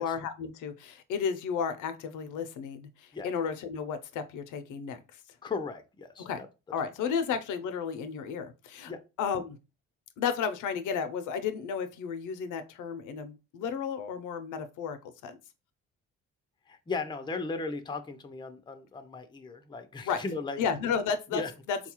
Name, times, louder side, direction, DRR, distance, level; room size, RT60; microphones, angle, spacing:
voice 1, 0.0-5.2 6.2-6.4 6.7-8.9 9.2-9.6 10.2-15.0 15.2-15.4 20.0-20.2 20.6-21.4 21.7-21.8, left 6 dB, 85° left, 10 dB, 0.6 m, -33 dB
voice 2, 5.4-6.5 8.9-9.0 16.7-20.6 21.3-21.5, left 4 dB, 15° left, 7 dB, 0.5 m, -36 dB
3.9 x 2.3 x 2.9 m, 0.29 s
cardioid pair, 90°, 30 cm